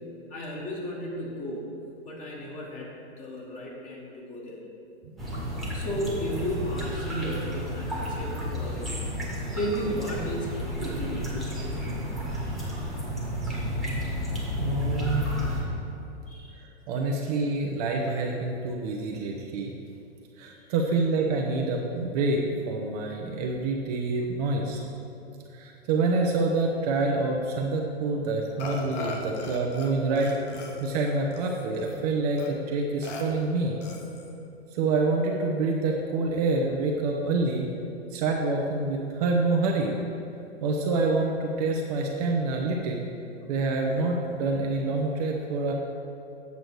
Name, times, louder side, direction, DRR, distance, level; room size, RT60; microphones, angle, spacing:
voice 1, 0.3-1.7 2.1-2.9 3.2-4.6 5.7-9.0 9.5-12.0 15.5-15.6 16.3-16.5 17.1-17.2, equal, 25° left, -3 dB, 1.7 m, -34 dB
sound 1, 5.2-15.6, equal, ahead, 1.6 m, -32 dB
voice 2, 14.6-15.3 16.9-19.8 20.4-22.4 22.7-24.8 25.5-30.3 30.8-33.8 34.7-37.7 38.1-40.0 40.6-43.1 43.5-45.7, right 3 dB, 35° right, 1 dB, 0.8 m, -27 dB
Burping eructation, 28.6-29.9 30.2-32.0 32.4-32.5 33.0-33.2 33.8-34.3, left 3 dB, 40° left, 1.2 m, -38 dB
8.2 x 6.2 x 4.7 m, 2.8 s
hypercardioid pair, 120°, 34 cm